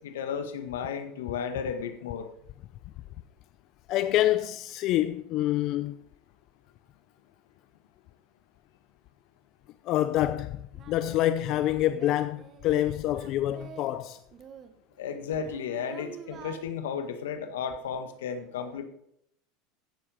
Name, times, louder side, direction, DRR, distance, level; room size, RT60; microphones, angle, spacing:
voice 1, 0.0-2.3 15.0-18.8, left 7 dB, 85° left, 1.7 m, -34 dB
voice 2, 3.9-6.0 9.8-14.2, left 13 dB, 55° left, 0.7 m, -27 dB
Singing, 10.7-13.9 14.3-16.6, right 8 dB, 40° right, 1.5 m, -48 dB
16.0 x 7.3 x 5.1 m
supercardioid pair, 100°, 0 cm